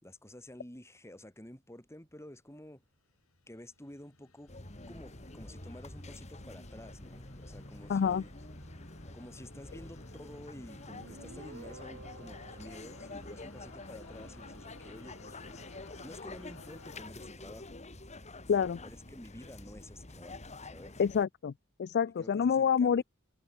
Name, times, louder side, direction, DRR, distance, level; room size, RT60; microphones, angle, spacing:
voice 1, 0.0-2.8 3.5-4.5 4.9-8.3 9.1-15.4 16.0-17.9 18.8-21.0 22.2-23.0, left 1 dB, 15° left, 4.0 m, -50 dB
sound 1, 3.0-17.1, left 3 dB, 80° left, 5.0 m, -57 dB
sound 2, 4.5-21.3, left 2 dB, 35° left, 3.3 m, -48 dB
voice 2, 7.9-8.2 18.5-18.8 21.0-21.5 21.8-23.0, left 7 dB, 50° left, 0.4 m, -27 dB
Guitar, 10.9-14.4, right 2 dB, 55° right, 2.5 m, -53 dB
head